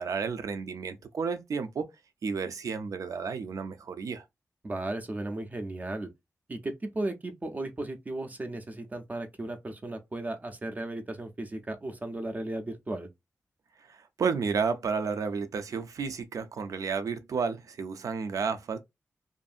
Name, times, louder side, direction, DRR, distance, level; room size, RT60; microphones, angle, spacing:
voice 1, 0.0-1.9 2.2-4.2 13.9-18.8, right 5 dB, 80° right, 0.5 m, -32 dB
voice 2, 4.6-6.1 6.5-13.1, right 2 dB, 30° right, 0.5 m, -35 dB
2.6 x 2.5 x 2.4 m
wide cardioid pair, 145°, 6 cm